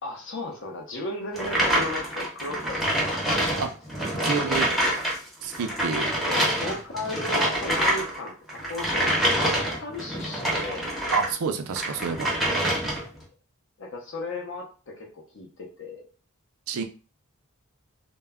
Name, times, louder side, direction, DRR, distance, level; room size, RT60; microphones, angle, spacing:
voice 1, 0.0-3.1 3.4-3.6 4.2-4.3 6.3-9.1 9.4-10.9 13.8-16.0, left 2 dB, 55° left, 0 dB, 0.6 m, -35 dB
sound 1, 1.3-11.3 11.7-13.2, right 1 dB, ahead, 0.6 m, -26 dB
voice 2, 4.2-4.7 5.4-6.1 11.1-12.3 16.7-16.8, right 6 dB, 70° right, 7 dB, 0.4 m, -28 dB
2.2 x 2.0 x 3.4 m, 0.36 s
head